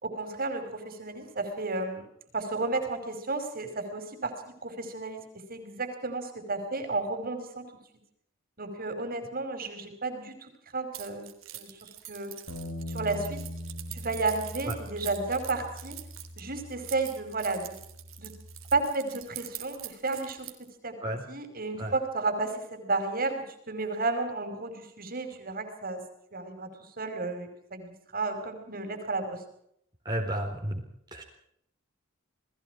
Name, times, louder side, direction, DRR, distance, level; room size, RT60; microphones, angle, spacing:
voice 1, 0.0-2.1 2.3-7.7 8.6-11.3 11.5-12.3 12.9-13.4 13.9-16.0 16.4-17.8 18.2-18.4 18.7-21.0 21.3-26.0 26.3-26.7 27.0-29.4, right 3 dB, 45° right, 6 dB, 5.0 m, -32 dB
Keys jangling, 10.9-20.7, right 15 dB, 80° right, 3.4 m, -44 dB
Bass guitar, 12.5-18.7, left 1 dB, 80° left, 7.4 m, -42 dB
voice 2, 30.0-30.8 31.1-31.2, right 1 dB, 20° right, -1 dB, 4.1 m, -32 dB
29.5 x 20.5 x 4.8 m, 0.73 s
head